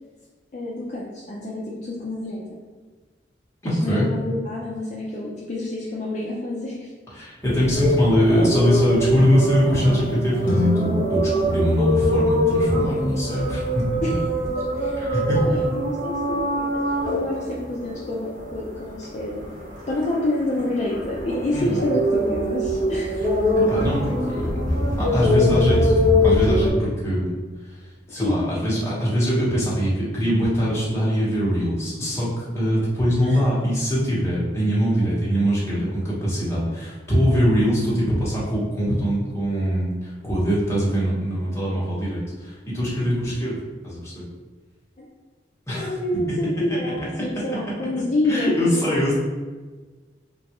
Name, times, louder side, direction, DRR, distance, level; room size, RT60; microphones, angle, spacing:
voice 1, 0.5-2.6 3.6-6.9 14.0-14.1 14.8-16.8 17.1-19.4 19.9-23.5 28.1-28.4 33.2-33.4 45.0-45.1 45.7-49.0, left 1 dB, 40° left, -4 dB, 0.4 m, -28 dB
voice 2, 3.6-4.1 7.1-13.8 15.0-15.6 21.5-21.8 23.7-24.6 25.0-27.3 27.6-27.8 28.1-43.6 43.8-44.2 45.7-46.0 46.8-46.9 48.2-49.1, equal, 15° left, -7 dB, 0.9 m, -22 dB
sound 1, 7.4-26.7, left 1 dB, 45° right, 1.0 m, -23 dB
sound 2, 10.4-12.9, left 2 dB, 90° left, 0.6 m, -28 dB
3.5 x 2.3 x 2.8 m, 1.3 s
head